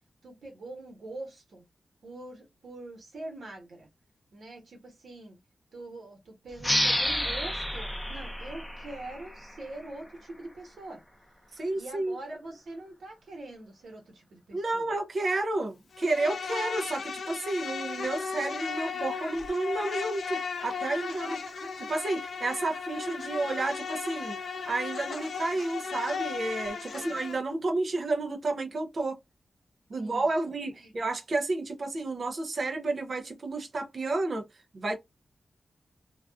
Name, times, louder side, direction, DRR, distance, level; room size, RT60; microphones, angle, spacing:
voice 1, 0.2-1.6 2.0-3.9 4.3-5.4 5.7-11.0 11.7-14.9 21.1-21.9 22.4-22.5 25.5-25.6 26.9-27.2 30.0-31.0, right 2 dB, 80° right, 1.1 m, -44 dB
sound 1, 6.6-9.9, equal, 5° left, 0.6 m, -30 dB
voice 2, 11.5-12.2 14.5-21.4 21.8-24.4 24.7-29.2 29.9-34.5 34.7-35.0, right 2 dB, 50° right, 0.4 m, -31 dB
Insect, 15.9-27.4, left 5 dB, 75° left, 0.4 m, -36 dB
2.4 x 2.3 x 2.3 m
wide cardioid pair, 140°, 0 cm